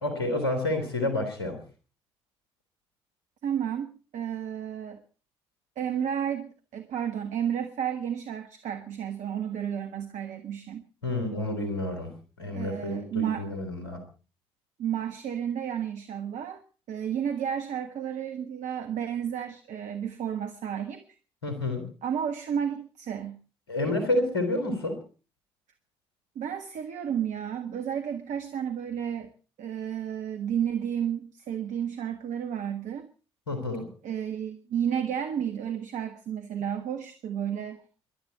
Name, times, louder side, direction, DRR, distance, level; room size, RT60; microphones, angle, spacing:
voice 1, 0.0-1.6 11.0-12.1 12.4-14.0 21.4-21.9 23.7-25.0 33.5-33.9, left 2 dB, 85° left, 8 dB, 3.5 m, -29 dB
voice 2, 3.4-5.0 5.7-10.8 12.5-13.5 14.8-16.6 16.9-21.0 22.0-23.4 23.8-24.1 26.3-29.3 29.6-33.1 34.0-37.8, right 9 dB, 65° right, 7 dB, 1.5 m, -32 dB
26.0 x 11.5 x 4.2 m, 0.37 s
hypercardioid pair, 40°, 13 cm